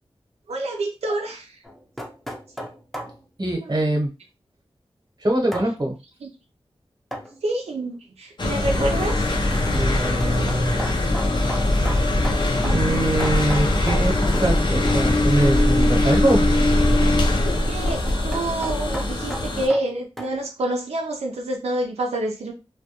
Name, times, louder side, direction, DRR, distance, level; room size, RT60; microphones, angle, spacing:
voice 1, 0.5-1.6 3.6-3.8 6.2-6.3 7.4-9.3 12.6-13.1 17.6-22.5, right 1 dB, 90° right, 1 dB, 0.4 m, -27 dB
sound 1, 1.6-3.2 5.5-5.7 7.1-7.4 8.7-14.6 14.9-15.1 17.2-20.4, equal, ahead, 0.5 m, -35 dB
voice 2, 3.4-4.1 5.2-6.0 9.6-10.9 12.6-16.5, right 1 dB, 40° right, 1 dB, 0.9 m, -23 dB
sound 2, 8.4-19.7, left 1 dB, 45° left, 0.5 m, -21 dB
2.2 x 2.2 x 2.8 m, 0.27 s
wide cardioid pair, 70°, 10 cm